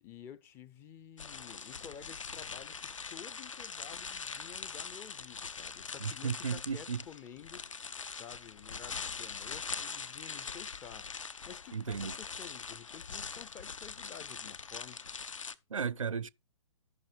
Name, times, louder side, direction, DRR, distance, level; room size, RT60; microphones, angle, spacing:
voice 1, 0.0-7.7 8.1-11.1 11.5-15.0, left 8 dB, 15° left, 0.4 m, -51 dB
sound 1, 1.2-15.5, left 5 dB, 70° left, 0.6 m, -42 dB
voice 2, 6.0-7.0 11.7-12.1 15.7-16.3, right 6 dB, 75° right, 0.5 m, -34 dB
14.0 x 5.7 x 3.3 m
figure-of-eight pair, 120°, 17 cm